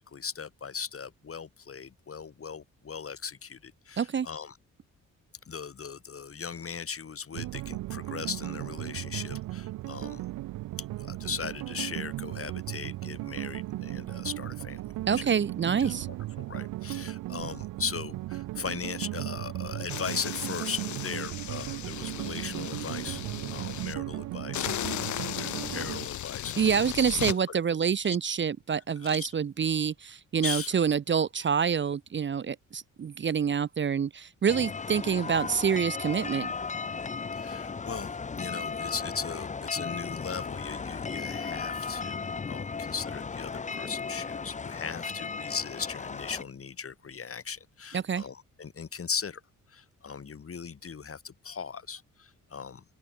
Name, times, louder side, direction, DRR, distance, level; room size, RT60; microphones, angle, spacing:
voice 1, 0.0-4.5 5.5-10.2 11.0-14.8 15.1-15.3 15.8-15.9 16.4-23.2 23.5-26.7 27.5-27.6 28.0-28.2 29.0-29.3 30.4-30.7 37.3-49.4 49.7-52.8, left 6 dB, 45° left, 3.3 m, -38 dB
voice 2, 4.0-4.3 15.1-16.1 26.6-36.5 47.9-48.2, right 7 dB, 35° right, 0.7 m, -27 dB
sound 1, 7.3-26.1, right 17 dB, 75° right, 0.5 m, -36 dB
sound 2, 19.9-23.9 24.5-27.4, left 13 dB, 60° left, 0.6 m, -36 dB
sound 3, 34.5-46.4, left 5 dB, 20° left, 0.7 m, -36 dB
open air
cardioid pair, 85°, 32 cm